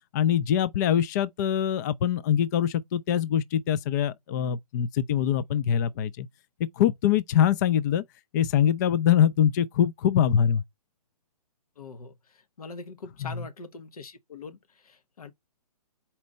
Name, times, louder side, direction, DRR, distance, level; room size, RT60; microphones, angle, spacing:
voice 1, 0.1-6.3 6.8-8.0 8.3-10.6 13.2-13.4, left 9 dB, 30° left, 0.4 m, -23 dB
voice 2, 11.8-15.3, left 4 dB, 70° left, 1.1 m, -43 dB
4.3 x 4.3 x 5.2 m
figure-of-eight pair, 135°, 20 cm